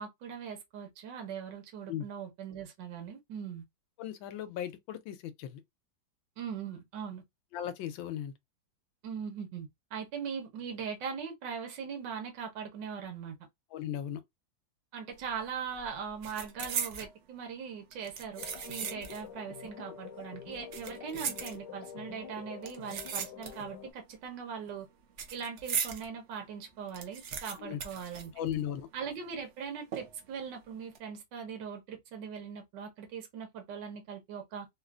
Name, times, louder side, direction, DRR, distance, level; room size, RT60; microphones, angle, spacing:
voice 1, 0.0-3.6 6.4-7.2 9.0-13.4 14.9-24.9 25.3-28.3 28.9-34.7, right 6 dB, 70° right, 1.6 m, -40 dB
voice 2, 4.0-5.6 7.5-8.3 13.7-14.2 27.5-27.8 28.4-28.9, left 10 dB, 90° left, 1.4 m, -37 dB
sound 1, 15.2-15.5 15.7-17.1 17.9-19.3 19.6-19.7 20.5-21.9 22.6-23.8 24.1-26.1 26.5-26.6 26.7-28.9 29.1-29.2 29.9-30.3 30.8-31.0, right 7 dB, 85° right, 0.6 m, -38 dB
sound 2, 18.4-23.9, left 8 dB, 70° left, 1.1 m, -47 dB
3.7 x 2.4 x 2.4 m
omnidirectional pair, 2.1 m